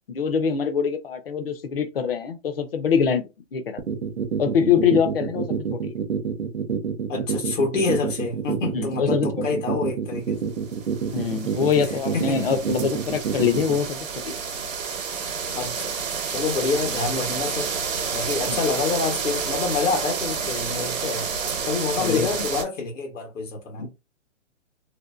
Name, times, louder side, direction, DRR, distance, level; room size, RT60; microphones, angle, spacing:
voice 1, 0.1-3.8 4.4-5.9 8.7-9.6 11.1-14.4 16.9-17.0 18.5-18.6 22.0-22.3 23.8-23.9, left 7 dB, 50° left, 0.5 m, -24 dB
sound 1, 3.8-13.8, right 7 dB, 60° right, 0.5 m, -27 dB
voice 2, 7.1-10.5 12.1-12.4 15.5-16.0 16.3-17.8 18.1-21.3 21.7-23.9, left 4 dB, 80° left, 1.1 m, -27 dB
sound 2, 10.6-22.6, right 6 dB, 85° right, 0.8 m, -30 dB
2.6 x 2.1 x 2.3 m
hypercardioid pair, 175°, 38 cm